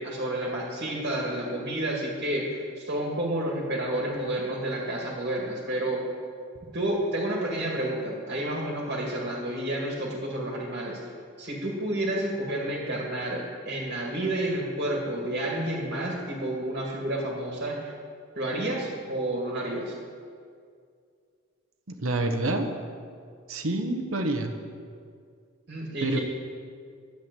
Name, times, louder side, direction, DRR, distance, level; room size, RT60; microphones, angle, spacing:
voice 1, 0.0-6.0 6.7-11.0 11.4-17.9 18.4-19.9 25.7-26.2, right 1 dB, 50° right, -3 dB, 2.1 m, -30 dB
voice 2, 21.9-22.7 23.5-24.5 26.0-26.2, right 2 dB, 75° right, 5 dB, 1.1 m, -27 dB
10.5 x 7.9 x 8.3 m, 2.2 s
head